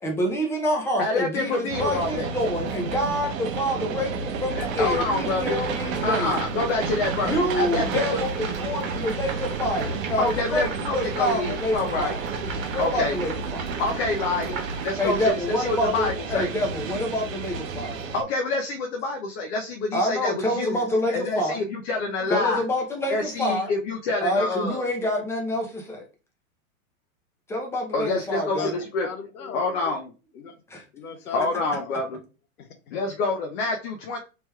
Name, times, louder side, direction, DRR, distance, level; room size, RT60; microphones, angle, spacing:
voice 1, 0.0-6.4 7.2-12.2 12.7-13.6 15.0-18.1 19.9-21.6 22.2-23.7 24.2-26.0 27.5-28.8 30.7-30.8, equal, 5° left, 1 dB, 0.5 m, -27 dB
voice 2, 1.0-2.3 4.6-5.6 6.0-8.0 10.2-12.1 12.8-13.2 13.8-16.5 18.1-20.8 21.1-22.6 23.1-24.8 27.9-29.1 29.5-30.1 31.3-32.2 32.9-34.2, left 3 dB, 50° left, 2 dB, 0.6 m, -27 dB
sound 1, 1.7-18.2, right 4 dB, 65° right, 0.7 m, -32 dB
sound 2, 4.6-15.3, right 5 dB, 35° right, 1.3 m, -36 dB
voice 3, 29.0-30.0 30.3-30.5 30.9-32.0 32.6-33.0, left 6 dB, 85° left, 7 dB, 0.8 m, -37 dB
3.3 x 2.9 x 2.2 m, 0.33 s
hypercardioid pair, 120°, 43 cm